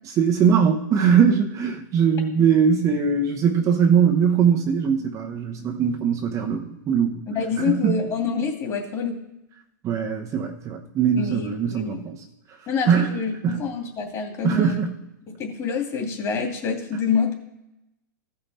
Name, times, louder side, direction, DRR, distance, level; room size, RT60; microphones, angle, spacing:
voice 1, 0.2-7.2 7.6-8.0 9.8-12.2 12.9-13.2 13.4-13.7 14.4-14.9, right 7 dB, 30° right, 2 dB, 1.0 m, -21 dB
voice 2, 7.3-9.2 11.2-11.4 11.7-12.0 12.7-14.8 15.3-17.3, left 5 dB, 30° left, 2 dB, 2.6 m, -26 dB
15.0 x 5.5 x 4.3 m, 0.90 s
hypercardioid pair, 125°, 11 cm